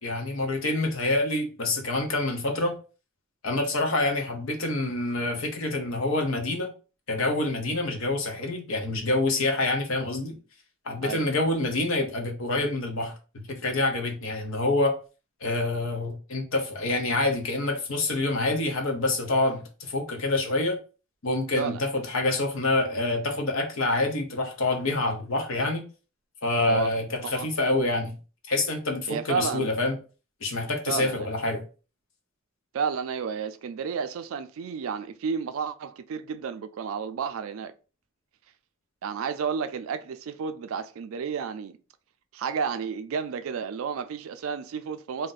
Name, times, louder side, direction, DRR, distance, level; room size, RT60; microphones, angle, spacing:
voice 1, 0.0-2.7 3.4-6.7 7.1-10.4 10.8-15.0 15.4-20.8 21.2-25.8 26.4-28.1 28.5-30.0 30.4-31.6, left 2 dB, 70° left, 0.8 m, -27 dB
voice 2, 11.0-11.3 21.6-21.8 26.7-26.9 27.2-27.5 29.1-29.7 30.9-31.3 32.7-37.7 39.0-41.8 42.3-45.3, right 6 dB, 75° right, 0.3 m, -31 dB
2.5 x 2.1 x 3.8 m
head